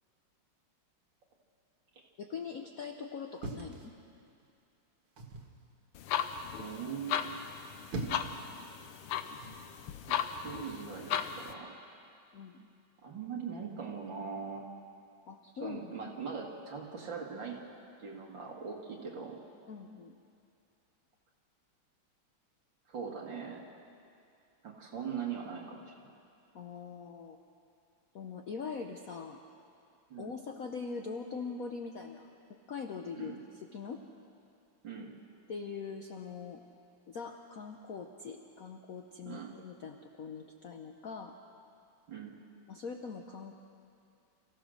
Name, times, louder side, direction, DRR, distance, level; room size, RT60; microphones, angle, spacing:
voice 1, 2.2-3.9 12.3-12.7 15.3-15.9 19.7-20.1 26.5-27.4 28.1-29.4 30.2-34.0 35.5-36.6 37.1-41.4 42.7-43.6, left 5 dB, 55° left, 4 dB, 1.1 m, -42 dB
sound 1, 3.4-4.4 5.2-5.6 7.5-8.4 9.4-9.7, right 2 dB, 75° right, 2.6 m, -41 dB
sound 2, 5.9-11.5, left 8 dB, 85° left, 1.7 m, -37 dB
voice 2, 6.6-7.5 10.1-11.7 13.0-14.7 15.6-17.6 18.0-19.4 22.9-23.6 24.6-25.9 30.1-30.3 33.1-33.4 34.8-35.1 39.3-39.5 42.1-42.4, right 6 dB, 60° right, -1 dB, 2.7 m, -41 dB
27.0 x 15.5 x 6.4 m, 2.5 s
omnidirectional pair, 2.4 m